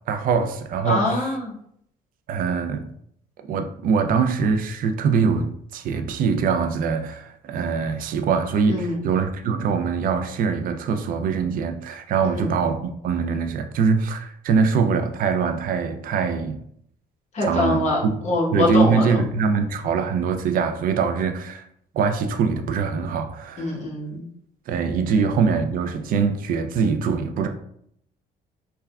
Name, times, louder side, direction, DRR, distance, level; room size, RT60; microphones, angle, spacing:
voice 1, 0.1-1.3 2.3-2.9 3.5-16.6 17.4-18.1 18.5-21.7 21.9-23.8 24.7-27.5, right 5 dB, 55° right, 7 dB, 0.4 m, -23 dB
voice 2, 0.9-1.5 8.7-9.0 12.3-12.5 17.3-19.2 23.6-24.2, left 2 dB, 45° left, -3 dB, 1.0 m, -24 dB
3.5 x 2.2 x 2.2 m, 0.68 s
cardioid pair, 110°, 17 cm